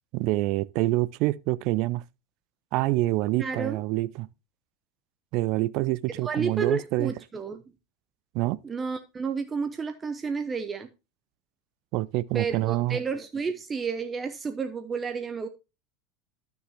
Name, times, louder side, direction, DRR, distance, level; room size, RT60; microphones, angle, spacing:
voice 1, 0.1-2.0 2.7-4.3 5.3-7.1 8.3-8.6 11.9-13.0, right 18 dB, 55° right, 0.4 m, -26 dB
voice 2, 3.4-3.8 6.2-7.6 8.6-10.9 12.3-15.5, right 5 dB, 25° right, 0.9 m, -31 dB
12.0 x 6.6 x 2.8 m
figure-of-eight pair, 75°, 0 cm